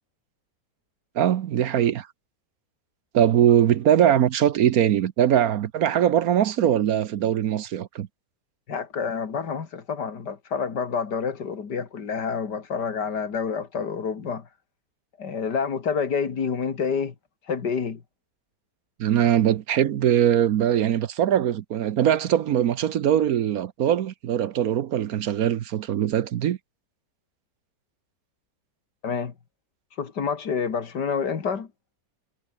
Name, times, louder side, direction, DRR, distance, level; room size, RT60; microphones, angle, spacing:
voice 1, 1.2-2.1 3.1-8.1 19.0-26.6, right 10 dB, 65° right, 1.2 m, -21 dB
voice 2, 8.7-14.5 15.2-17.1 17.5-18.0 29.0-29.3 30.0-31.7, left 6 dB, 75° left, 2.7 m, -28 dB
omnidirectional pair, 1.8 m